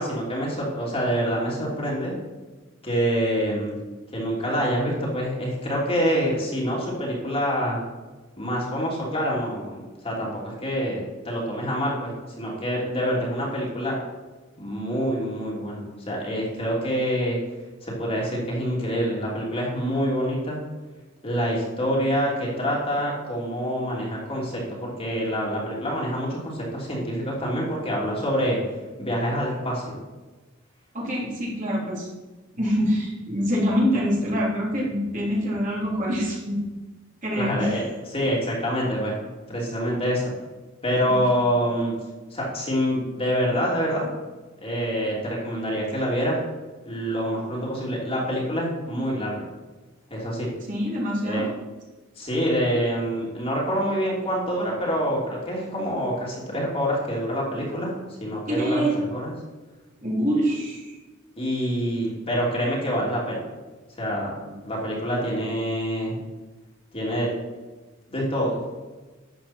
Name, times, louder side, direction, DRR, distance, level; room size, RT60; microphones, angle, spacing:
voice 1, 0.0-2.1 2.8-3.7 4.1-7.8 8.4-12.1 12.4-13.9 14.6-17.4 17.8-20.6 21.2-28.6 29.0-30.0 37.4-37.8 38.1-39.1 39.5-40.3 40.8-41.9 42.3-44.1 44.6-46.4 46.8-49.4 50.1-50.5 51.2-51.5 52.2-57.9 58.2-59.3 61.4-63.4 64.0-64.3 64.6-66.1 66.9-67.3 68.1-68.6, equal, 30° left, -4 dB, 3.1 m, -26 dB
voice 2, 30.9-32.1 32.6-36.6 37.2-37.7 41.3-41.4 50.7-51.5 58.5-58.9 60.0-61.0 64.5-64.7, equal, 40° right, -5 dB, 3.6 m, -25 dB
12.0 x 8.3 x 4.4 m, 1.3 s
head